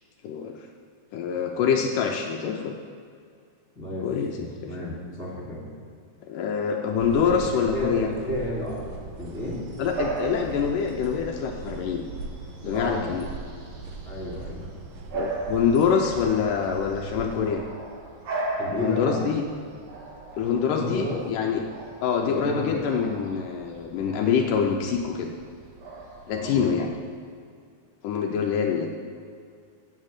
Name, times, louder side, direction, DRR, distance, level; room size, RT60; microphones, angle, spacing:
voice 1, 1.1-2.7 4.0-4.4 6.2-8.1 9.8-12.0 12.6-13.3 15.1-17.6 18.7-19.4 20.4-21.6 22.0-25.3 26.3-26.9 28.0-29.0, left 6 dB, 80° left, 1 dB, 2.2 m, -25 dB
voice 2, 3.7-5.7 7.2-9.6 12.7-13.1 14.0-14.7 18.6-19.3 20.7-21.3 22.2-22.8 26.3-26.6, left 1 dB, ahead, -7 dB, 2.7 m, -32 dB
sound 1, 7.0-17.5, right 4 dB, 85° right, 2.8 m, -40 dB
Bark / Bird vocalization bird call bird song, 9.3-26.8, right 3 dB, 60° right, 2.9 m, -38 dB
8.2 x 7.6 x 8.1 m, 2.2 s
omnidirectional pair, 3.9 m